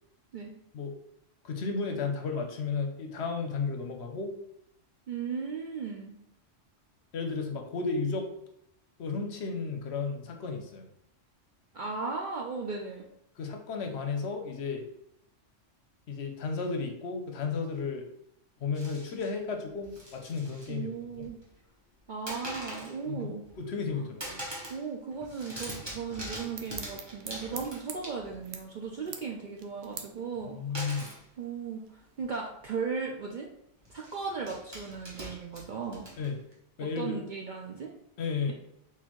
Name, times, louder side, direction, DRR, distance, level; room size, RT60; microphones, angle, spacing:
voice 1, 1.4-4.3 7.1-8.3 9.0-10.9 13.4-14.8 16.1-18.1 18.6-20.9 21.1-21.3 23.1-24.4 30.5-31.1 36.2-36.4 36.8-37.2 38.2-38.5, left 4 dB, 65° left, 4 dB, 0.9 m, -33 dB
voice 2, 5.1-6.1 11.7-13.1 20.7-21.4 22.1-23.4 23.9-24.1 24.7-30.6 31.4-33.5 33.9-36.1 37.0-37.9, right 5 dB, 55° right, 0 dB, 0.5 m, -36 dB
sound 1, 18.7-19.3 19.8-20.7 21.0-21.6 22.3-23.0 23.4-23.9 24.2-24.8 25.1-28.5 30.7-31.2 32.2-32.3 32.6-32.8 33.8-36.5, right 1 dB, 20° right, 1.1 m, -43 dB
sound 2, 26.1-32.5, right 7 dB, 85° right, 1.0 m, -47 dB
4.2 x 4.0 x 3.0 m, 0.77 s
omnidirectional pair, 1.3 m